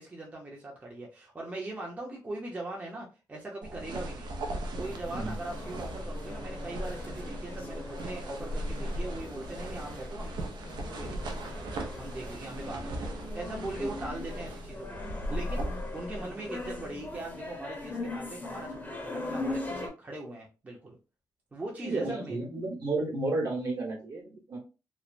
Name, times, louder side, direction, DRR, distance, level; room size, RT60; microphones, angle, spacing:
voice 1, 0.0-4.3 4.7-10.5 11.0-11.6 12.0-13.1 13.3-21.0 21.5-22.4, right 2 dB, 20° right, -2 dB, 0.6 m, -40 dB
sound 1, 3.6-17.0, right 1 dB, 85° right, 0.5 m, -38 dB
sound 2, 4.8-19.9, left 2 dB, 20° left, 0.7 m, -41 dB
voice 2, 21.8-24.6, right 2 dB, 55° right, -2 dB, 1.0 m, -32 dB
3.1 x 2.0 x 2.4 m, 0.31 s
wide cardioid pair, 140°, 8 cm